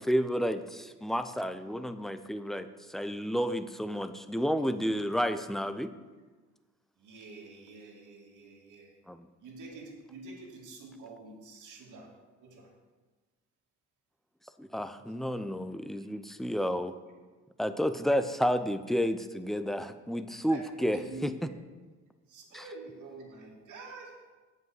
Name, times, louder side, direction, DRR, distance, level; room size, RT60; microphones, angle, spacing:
voice 1, 0.0-5.9 9.1-9.2 14.6-16.9 17.6-21.3, equal, ahead, 10 dB, 0.5 m, -31 dB
voice 2, 7.0-9.0 9.4-12.1 12.4-12.7 16.0-16.1 20.4-21.6 22.3-24.2, right 2 dB, 80° right, -1 dB, 2.2 m, -47 dB
8.2 x 5.5 x 7.5 m, 1.3 s
cardioid pair, 90°, 30 cm